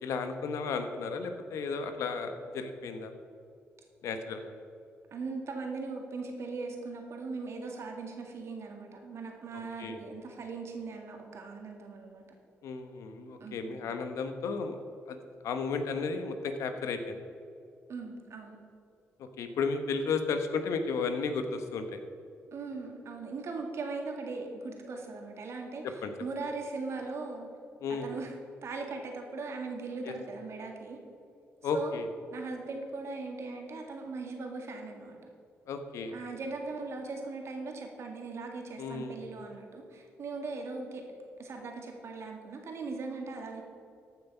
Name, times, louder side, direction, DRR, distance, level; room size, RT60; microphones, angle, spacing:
voice 1, 0.0-3.1 4.0-4.5 9.5-10.0 12.6-14.8 15.1-15.2 15.4-17.2 19.2-22.0 25.8-26.1 27.8-28.1 30.0-30.1 31.6-32.1 35.7-36.1 38.8-39.2, left 4 dB, 80° left, 7 dB, 1.0 m, -34 dB
voice 2, 5.1-12.2 13.4-13.7 17.9-18.6 22.5-25.8 26.2-27.5 27.9-28.4 28.6-31.0 31.7-31.9 32.3-35.2 36.1-41.0 41.4-43.6, right 3 dB, 65° right, 2 dB, 2.1 m, -39 dB
14.0 x 6.0 x 5.6 m, 2.5 s
cardioid pair, 70°, 5 cm